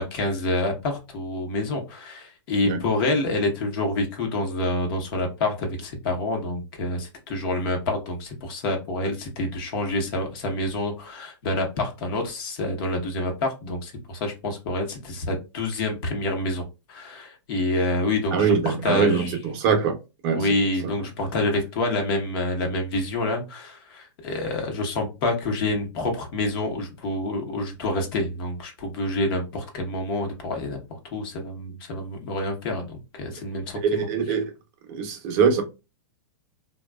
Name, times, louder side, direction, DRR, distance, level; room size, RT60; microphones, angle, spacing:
voice 1, 0.0-19.4 20.3-34.1, left 2 dB, 50° left, 0.8 m, -27 dB
voice 2, 18.3-19.9 20.2-20.5 33.7-34.4 34.9-35.6, right 6 dB, 35° right, 0.6 m, -22 dB
2.5 x 2.1 x 2.2 m
hypercardioid pair, 145°, 15 cm